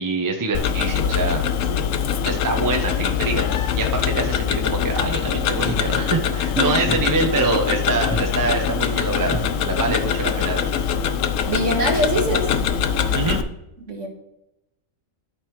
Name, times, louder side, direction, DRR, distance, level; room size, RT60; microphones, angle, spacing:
voice 1, 0.0-1.8 2.2-3.5 3.7-10.8 13.1-13.4, right 3 dB, 15° right, 2 dB, 0.8 m, -25 dB
Tick-tock, 0.5-13.4, left 8 dB, 65° left, 0.9 m, -23 dB
sound 1, 4.9-10.0, right 1 dB, 15° left, 1.2 m, -35 dB
voice 2, 11.5-12.5 13.9-14.1, right 1 dB, 55° right, 1 dB, 2.0 m, -23 dB
13.0 x 5.5 x 3.1 m, 0.89 s
omnidirectional pair, 1.5 m